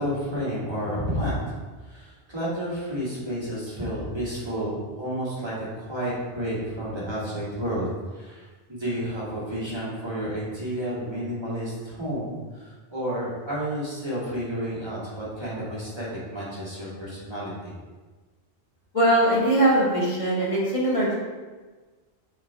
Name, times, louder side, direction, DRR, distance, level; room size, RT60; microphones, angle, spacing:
voice 1, 0.0-1.4 1.8-7.9 8.1-17.7, equal, 25° right, -8 dB, 2.2 m, -31 dB
voice 2, 18.9-21.2, right 1 dB, 30° left, -6 dB, 1.7 m, -21 dB
7.4 x 4.4 x 3.4 m, 1.3 s
omnidirectional pair, 1.1 m